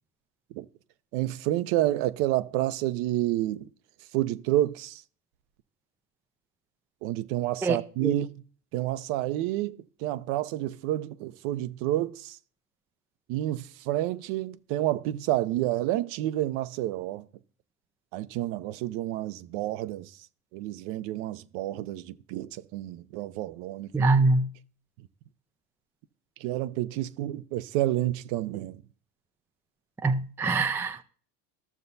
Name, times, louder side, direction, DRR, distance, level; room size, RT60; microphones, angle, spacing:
voice 1, 1.1-3.7 4.1-5.0 7.0-8.3 8.7-12.4 13.3-17.3 18.1-20.2 20.5-24.1 26.4-28.8, right 15 dB, 65° right, 0.8 m, -29 dB
voice 2, 23.9-24.5 30.0-31.0, right 3 dB, 5° right, 0.4 m, -24 dB
14.5 x 6.7 x 2.7 m
supercardioid pair, 100°, 45 cm